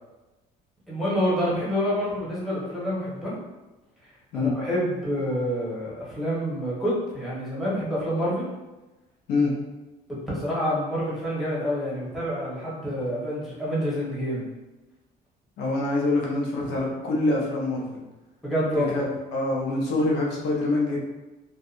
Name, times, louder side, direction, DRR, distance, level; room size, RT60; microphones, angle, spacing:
voice 1, 0.9-3.4 4.3-8.4 10.1-14.4 16.6-16.7 18.4-19.0, equal, ahead, -8 dB, 1.0 m, -27 dB
voice 2, 15.6-18.0 18.7-19.0 19.3-21.0, left 2 dB, 85° left, -2 dB, 0.7 m, -25 dB
2.7 x 2.3 x 2.5 m, 1.1 s
cardioid pair, 110°, 17 cm